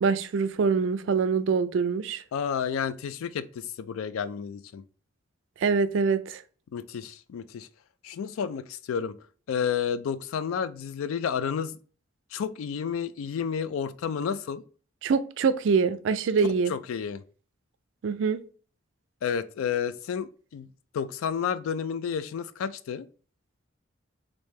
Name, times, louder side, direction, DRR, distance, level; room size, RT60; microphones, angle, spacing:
voice 1, 0.0-2.2 5.6-6.4 15.0-16.7 18.0-18.4, right 5 dB, 65° right, 0.3 m, -24 dB
voice 2, 2.3-4.8 6.7-7.7 8.0-9.2 9.5-11.8 12.3-14.6 16.7-17.2 19.2-20.7 20.9-23.1, left 7 dB, 85° left, 0.3 m, -31 dB
3.2 x 2.6 x 3.3 m
head